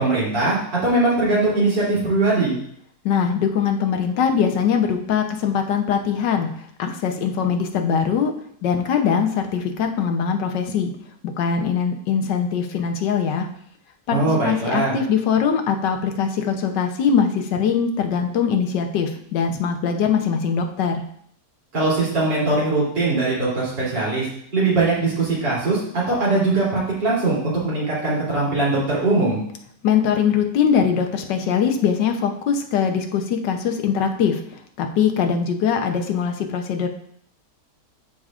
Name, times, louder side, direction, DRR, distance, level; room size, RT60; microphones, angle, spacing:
voice 1, 0.0-2.6 14.1-15.0 21.7-24.3 24.5-29.4, right 2 dB, 85° right, -6 dB, 3.8 m, -21 dB
voice 2, 3.0-6.5 6.8-8.3 8.6-10.9 11.4-13.5 14.1-21.0 29.8-34.4 34.8-36.9, left 7 dB, 80° left, 5 dB, 1.4 m, -22 dB
12.5 x 5.0 x 2.4 m, 0.67 s
omnidirectional pair, 1.9 m